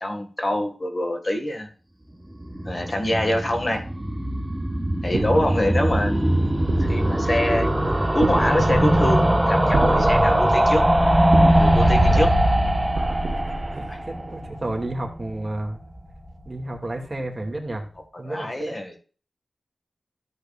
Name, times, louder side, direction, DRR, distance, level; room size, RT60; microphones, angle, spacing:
voice 1, 0.0-1.7 2.7-3.8 5.0-6.5 6.8-7.7 8.1-10.8 11.6-12.3 13.9-14.0 18.2-19.0, left 1 dB, 35° left, 4 dB, 1.9 m, -25 dB
sound 1, 2.3-15.4 15.7-15.8 16.0-16.1 16.3-16.4, right 1 dB, 5° right, 1.4 m, -21 dB
sound 2, 5.1-14.6, right 3 dB, 55° right, 1.1 m, -31 dB
voice 2, 13.7-15.8 16.4-17.8 18.2-18.8, right 1 dB, 30° right, 1 dB, 2.5 m, -31 dB
13.5 x 8.2 x 2.5 m, 0.38 s
wide cardioid pair, 100°, 0 cm